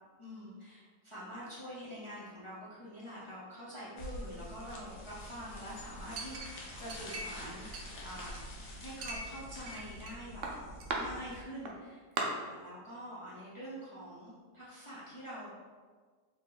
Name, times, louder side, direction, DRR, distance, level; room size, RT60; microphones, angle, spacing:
voice 1, 0.2-8.4 8.8-10.4 11.0-15.6, equal, 50° left, -10 dB, 0.3 m, -46 dB
sound 1, 4.0-11.4, left 1 dB, 75° left, 1.2 m, -47 dB
Chink clink, 6.2-7.4 7.7-8.5 9.0-10.1 10.4-11.0 11.7-11.8 12.2-12.3, right 4 dB, 70° right, 0.8 m, -39 dB
3.0 x 2.8 x 3.7 m, 1.5 s
omnidirectional pair, 1.8 m